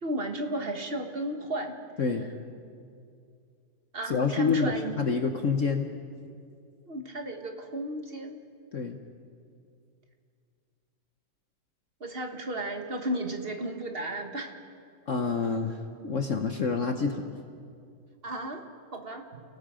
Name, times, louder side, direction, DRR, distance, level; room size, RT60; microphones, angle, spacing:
voice 1, 0.0-1.8 3.9-5.0 6.9-8.4 12.0-14.5 15.1-15.2 18.2-18.6 18.9-19.4, right 1 dB, 30° right, 5 dB, 1.3 m, -34 dB
voice 2, 4.1-5.9 8.7-9.0 15.1-17.3, left 5 dB, 55° left, 5 dB, 0.9 m, -28 dB
29.0 x 18.0 x 5.0 m, 2.3 s
omnidirectional pair, 2.4 m